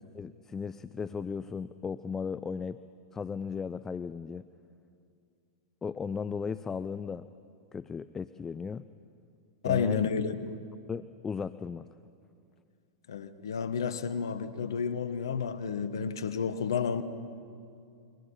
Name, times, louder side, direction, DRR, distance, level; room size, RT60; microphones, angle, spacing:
voice 1, 0.1-2.8 3.1-4.4 5.8-7.3 7.7-8.9 9.6-10.1 10.9-11.9, left 5 dB, 20° left, 0.6 m, -36 dB
voice 2, 9.6-10.5 13.1-17.0, left 6 dB, 75° left, 1.3 m, -31 dB
29.5 x 24.0 x 5.7 m
hypercardioid pair, 100°, 2 cm